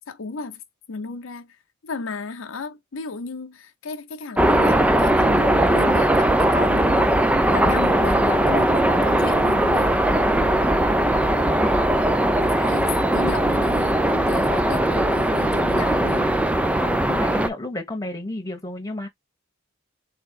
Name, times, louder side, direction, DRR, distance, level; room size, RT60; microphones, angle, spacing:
voice 1, 0.1-0.6 0.9-1.6 1.8-7.2 7.5-10.0 12.4-16.3, left 4 dB, 80° left, 0.7 m, -34 dB
sound 1, 4.4-17.5, right 1 dB, 5° right, 0.3 m, -19 dB
voice 2, 16.8-19.1, left 1 dB, 15° left, 1.1 m, -32 dB
3.6 x 3.6 x 3.6 m
head